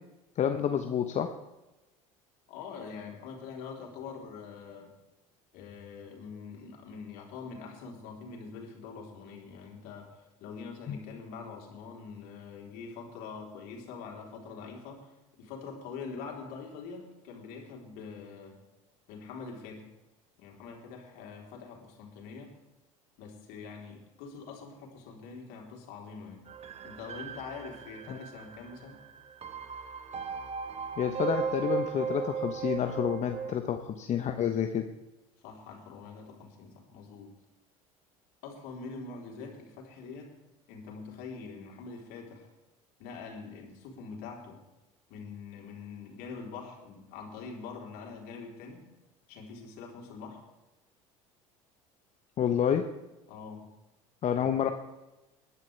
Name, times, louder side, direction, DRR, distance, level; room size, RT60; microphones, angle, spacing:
voice 1, 0.4-1.3 10.9-11.0 28.1-28.2 31.0-34.9 52.4-52.9 54.2-54.7, left 8 dB, 45° left, 6 dB, 1.0 m, -29 dB
voice 2, 2.5-4.9 5.5-10.1 10.4-15.1 15.4-18.6 19.1-19.9 20.4-22.5 23.2-26.5 26.8-29.0 35.4-37.4 38.4-40.3 40.7-42.5 43.0-44.6 45.1-48.9 49.3-50.4 53.3-53.7 54.3-54.6, left 5 dB, 65° left, 0 dB, 3.8 m, -44 dB
sound 1, 26.5-33.6, right 6 dB, 35° right, 1.1 m, -36 dB
21.0 x 11.0 x 3.4 m, 1.0 s
hypercardioid pair, 70°, 17 cm